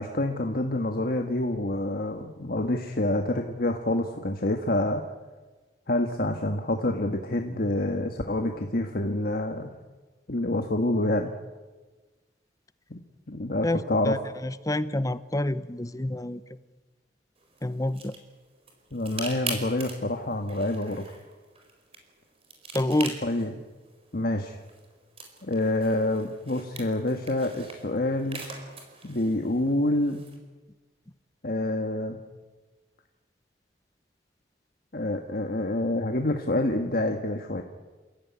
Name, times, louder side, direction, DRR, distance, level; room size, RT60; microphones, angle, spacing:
voice 1, 0.0-5.0 5.9-9.7 10.3-11.3 12.9-13.0 13.3-14.2 18.9-21.0 23.2-23.5 24.1-24.6 25.4-28.4 29.0-30.2 31.4-32.2 34.9-37.6, left 1 dB, 55° left, 4 dB, 1.6 m, -27 dB
voice 2, 13.6-16.4 17.6-18.1 22.7-23.2, left 1 dB, 20° left, 14 dB, 0.8 m, -28 dB
sound 1, 17.4-30.4, right 3 dB, 35° right, 4.5 m, -43 dB
28.5 x 16.0 x 9.5 m, 1.3 s
head